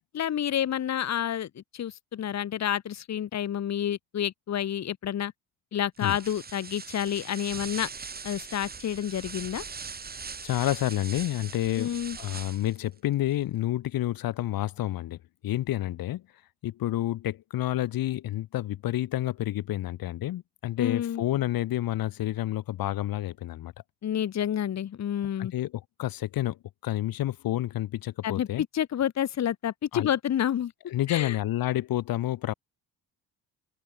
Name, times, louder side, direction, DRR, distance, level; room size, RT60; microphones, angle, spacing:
voice 1, 0.0-5.3 5.7-7.9 8.2-9.6 11.8-12.2 20.8-21.2 24.0-25.5 28.2-30.7 31.1-31.4, left 10 dB, 45° left, 2.0 m, -29 dB
sound 1, 6.0-12.8, right 5 dB, 25° right, 3.4 m, -41 dB
voice 2, 10.4-16.2 16.6-23.7 25.4-28.6 29.9-30.1 30.9-32.5, left 14 dB, 70° left, 2.5 m, -29 dB
cardioid pair, 135°, 37 cm